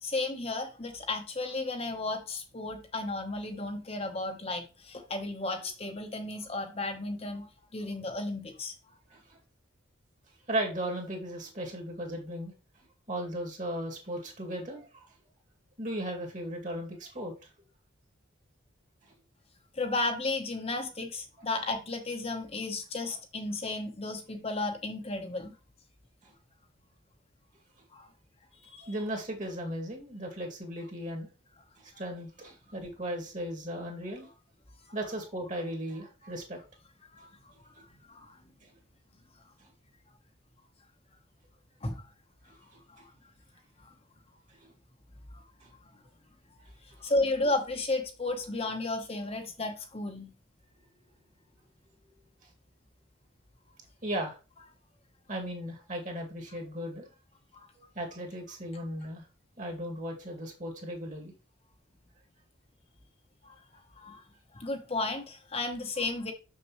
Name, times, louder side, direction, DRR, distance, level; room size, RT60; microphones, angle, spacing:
voice 1, 0.0-7.5 7.7-8.7 19.8-25.5 27.9-28.1 28.7-28.9 37.1-37.3 37.9-38.4 41.8-42.0 42.9-43.0 45.3-45.4 47.0-50.3 57.5-57.7 64.0-64.2 64.5-66.3, left 2 dB, 30° left, 1.0 m, -33 dB
voice 2, 10.5-12.5 13.1-15.1 15.8-17.3 26.2-26.3 28.8-31.3 31.8-34.3 34.9-36.6 38.6-38.7 39.6-39.7 42.5-43.0 44.5-44.7 45.6-45.7 52.4-52.5 54.0-54.4 55.3-57.1 57.9-59.3 59.6-61.3, right 1 dB, 40° right, 2.3 m, -36 dB
6.8 x 6.3 x 3.1 m
head